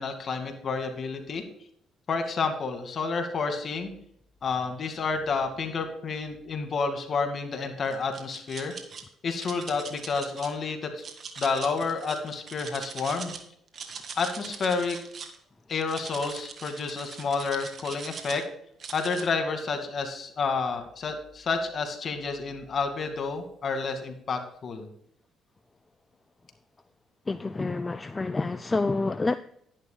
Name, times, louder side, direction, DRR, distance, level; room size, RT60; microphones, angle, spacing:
voice 1, 0.0-1.4 2.1-3.9 4.4-8.7 9.2-11.0 11.4-13.3 14.2-15.0 15.7-18.4 18.9-24.9, left 4 dB, 50° left, 6 dB, 2.2 m, -30 dB
sound 1, 7.9-9.0 9.4-10.5 11.0-13.4 13.7-15.4 15.8-18.4 18.8-19.2, right 5 dB, 50° right, 1.8 m, -41 dB
voice 2, 27.3-29.4, left 3 dB, 25° left, 12 dB, 0.5 m, -28 dB
11.0 x 11.0 x 2.3 m, 0.69 s
supercardioid pair, 70°, 0 cm